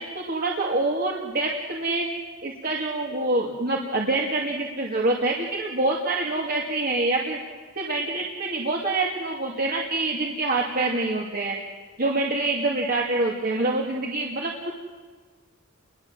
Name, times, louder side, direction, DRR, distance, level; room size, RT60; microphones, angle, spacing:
voice 1, 0.0-2.1 2.4-7.4 7.8-11.6 12.0-14.7, right 2 dB, 45° right, -1 dB, 2.4 m, -26 dB
29.5 x 22.0 x 7.6 m, 1.4 s
head